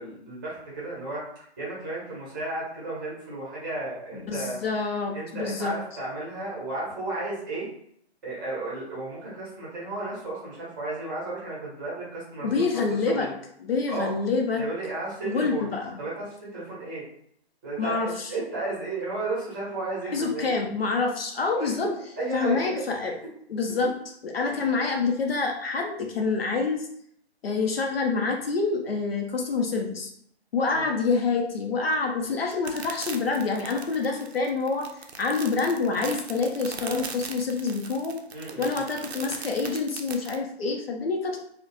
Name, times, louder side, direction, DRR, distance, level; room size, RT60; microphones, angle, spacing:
voice 1, 0.0-4.6 5.1-7.6 8.2-13.3 13.9-14.1 14.6-15.7 16.0-17.0 17.6-20.5 21.6-22.7 30.7-30.9 38.3-38.8, right 2 dB, 20° right, -8 dB, 0.8 m, -33 dB
voice 2, 4.1-5.7 12.4-13.3 13.6-14.6 15.2-16.0 17.8-18.3 20.1-21.9 22.3-23.1 23.5-23.9 24.2-26.8 27.4-30.1 30.5-34.9 35.2-38.1 38.6-41.4, left 4 dB, 65° left, 2 dB, 0.6 m, -27 dB
sound 1, 32.5-40.4, right 6 dB, 75° right, 0.5 m, -39 dB
2.3 x 2.1 x 3.0 m, 0.68 s
figure-of-eight pair, 150°, 33 cm